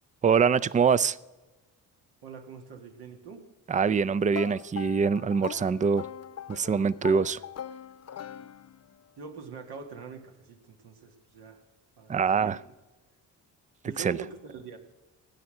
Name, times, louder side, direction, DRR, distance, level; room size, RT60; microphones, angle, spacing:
voice 1, 0.2-1.2 3.7-6.0 6.5-7.4 12.1-12.6 14.0-14.2, right 6 dB, 20° right, 19 dB, 0.4 m, -24 dB
voice 2, 2.2-3.5 9.2-11.6 12.0-12.6 13.8-14.8, right 5 dB, 75° right, 4 dB, 1.9 m, -44 dB
sound 1, 4.3-9.0, left 9 dB, 40° left, 0.6 m, -41 dB
15.5 x 9.4 x 6.4 m, 1.2 s
supercardioid pair, 65°, 39 cm